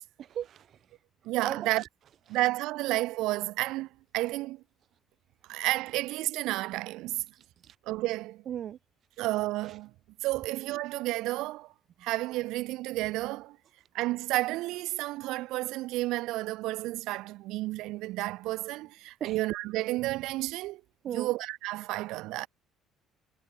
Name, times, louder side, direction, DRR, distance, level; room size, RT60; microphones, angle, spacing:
voice 1, 0.2-0.7 1.4-1.7 7.6-7.7 8.5-8.8 19.2-19.4 21.0-21.3, right 10 dB, 40° right, 1.3 m, -36 dB
voice 2, 1.2-1.8 2.3-3.9 4.1-4.6 5.5-7.2 7.9-8.4 9.2-9.9 10.2-11.7 12.0-13.6 13.9-20.8 21.1-22.5, right 18 dB, 75° right, 1.7 m, -31 dB
cardioid pair, 170°, 0 cm